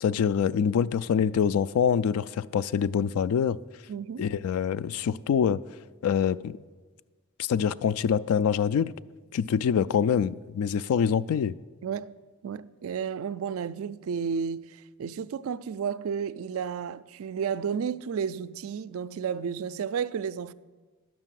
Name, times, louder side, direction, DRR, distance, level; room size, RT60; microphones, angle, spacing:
voice 1, 0.0-3.6 4.2-5.6 6.0-6.6 7.4-8.9 9.3-11.5, left 7 dB, 80° left, 0.3 m, -25 dB
voice 2, 3.9-4.3 11.8-12.1 12.4-20.5, right 7 dB, 70° right, 0.3 m, -32 dB
10.5 x 6.2 x 7.5 m
head